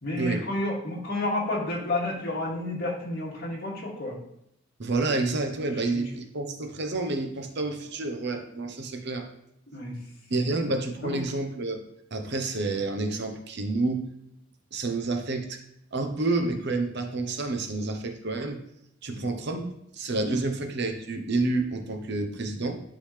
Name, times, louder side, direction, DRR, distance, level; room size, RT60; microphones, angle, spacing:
voice 1, 0.0-4.2 5.9-6.0 9.7-9.9 10.3-10.7 11.0-11.2 19.1-19.2 20.3-20.4, left 1 dB, 55° left, -4 dB, 2.4 m, -31 dB
voice 2, 4.8-9.3 10.3-11.8 12.1-14.1 14.7-15.6 15.9-18.6 19.0-22.8, right 2 dB, 60° right, 5 dB, 0.9 m, -29 dB
11.5 x 3.9 x 3.3 m, 0.81 s
head